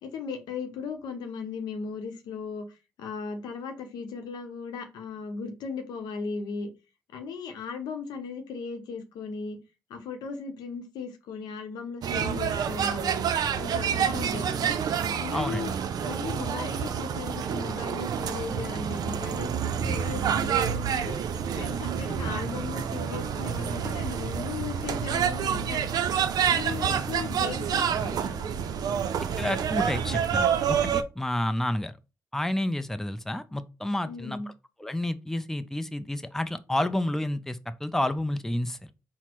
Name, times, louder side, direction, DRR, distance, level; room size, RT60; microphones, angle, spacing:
voice 1, 0.0-6.7 7.1-9.6 9.9-13.2 13.5-14.8 15.2-15.7 16.0-19.5 19.8-21.2 21.5-25.9 26.5-28.5 34.0-34.5, left 5 dB, 85° left, 0.7 m, -37 dB
sound 1, 12.0-31.0, right 8 dB, 70° right, 0.4 m, -28 dB
voice 2, 15.3-15.6 26.8-27.0 29.4-32.0 32.3-34.4 34.8-38.8, left 1 dB, 5° left, 0.4 m, -30 dB
4.2 x 2.0 x 4.4 m
supercardioid pair, 50°, 7 cm